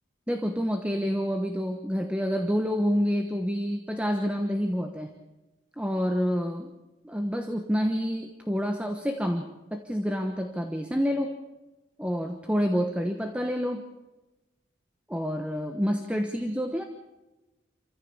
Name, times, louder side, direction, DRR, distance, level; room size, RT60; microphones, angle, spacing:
voice 1, 0.3-5.1 5.8-6.7 7.0-11.4 12.0-13.8 15.1-16.8, equal, 5° right, 5 dB, 1.1 m, -28 dB
27.0 x 15.0 x 7.2 m, 1.1 s
head